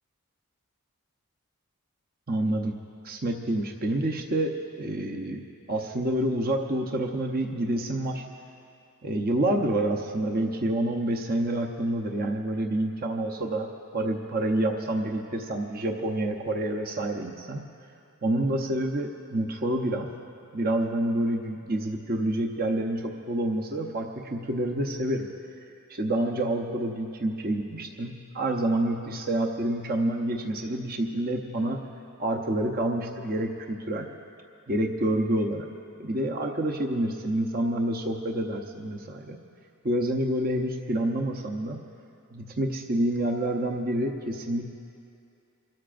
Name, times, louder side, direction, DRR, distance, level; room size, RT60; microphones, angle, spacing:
voice 1, 2.3-2.7 3.0-4.5 4.8-8.2 9.0-13.7 13.9-17.6 18.2-20.1 20.5-25.3 25.9-31.8 32.2-34.1 34.7-35.7 36.0-39.4 39.8-41.8 42.3-44.7, right 1 dB, 45° right, 2 dB, 0.8 m, -28 dB
29.0 x 13.5 x 2.6 m, 2.6 s
head